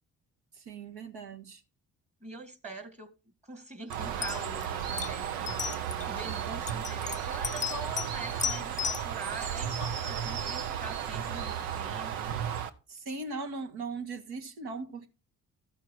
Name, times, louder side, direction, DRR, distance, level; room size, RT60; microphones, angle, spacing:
voice 1, 0.5-1.6 12.9-15.1, right 3 dB, 65° right, 1.6 m, -39 dB
voice 2, 2.2-3.1 3.4-5.6 6.1-12.3, right 2 dB, 15° right, 1.8 m, -43 dB
sound 1, 3.9-4.0 4.2-4.7 5.0-5.1 5.5-6.0 6.7-8.1 8.4-9.0, left 7 dB, 20° left, 0.4 m, -33 dB
Bird, 3.9-12.7, right 9 dB, 85° right, 0.9 m, -34 dB
13.5 x 5.7 x 4.6 m
hypercardioid pair, 45°, 41 cm